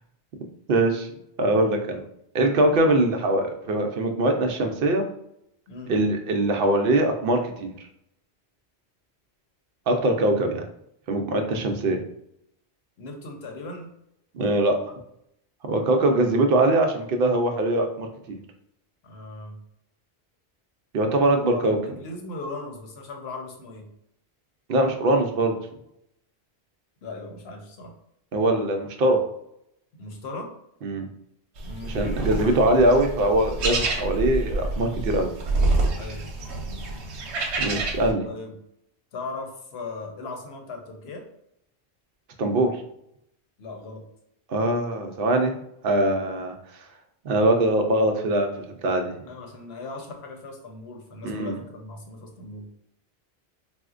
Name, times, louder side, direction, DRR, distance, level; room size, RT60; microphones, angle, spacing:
voice 1, 0.7-1.1 1.4-2.0 2.3-5.1 5.9-7.7 9.9-10.7 11.1-12.0 14.3-14.8 15.7-18.4 20.9-21.8 24.7-25.6 28.3-29.2 30.8-31.1 31.9-35.3 37.6-38.3 42.4-42.7 44.5-45.6 45.8-46.5 47.2-49.1 51.2-51.5, right 1 dB, 65° right, 4 dB, 0.7 m, -22 dB
voice 2, 13.0-13.9 19.0-19.6 21.3-23.9 27.0-27.9 30.0-30.5 31.6-32.0 35.9-36.2 38.2-38.5 39.1-41.2 43.6-44.0 49.2-52.7, left 3 dB, 70° left, 2 dB, 0.9 m, -38 dB
sound 1, 31.6-38.1, right 2 dB, 85° right, 0.9 m, -27 dB
4.2 x 2.1 x 2.4 m, 0.75 s
omnidirectional pair, 1.1 m